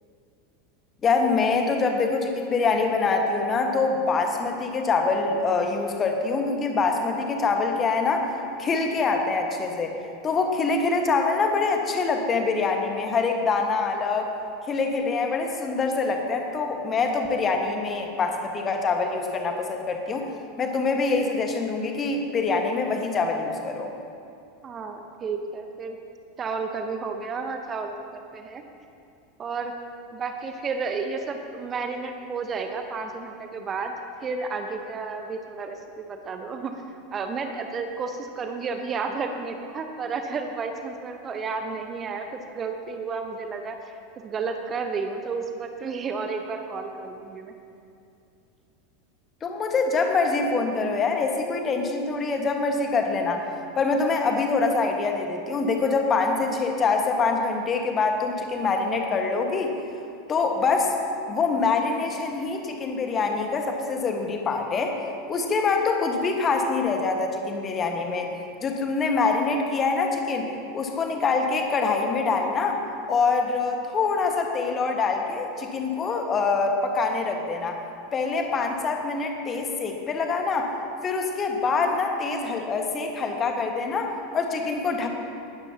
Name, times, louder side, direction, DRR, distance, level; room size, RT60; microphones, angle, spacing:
voice 1, 1.0-8.3 8.6-9.9 10.2-14.3 14.7-20.2 20.6-23.9 49.4-53.4 53.7-59.7 60.3-60.9 61.3-64.9 65.3-68.3 68.6-70.5 70.7-72.8 73.1-77.7 78.1-80.7 81.0-85.1, left 4 dB, 25° left, 3 dB, 1.5 m, -25 dB
voice 2, 24.6-26.0 26.4-28.1 28.3-28.6 29.4-29.7 30.1-33.9 34.2-36.7 37.1-47.5, right 4 dB, 25° right, 5 dB, 1.0 m, -32 dB
18.5 x 13.0 x 2.9 m, 2.6 s
figure-of-eight pair, 80°, 0 cm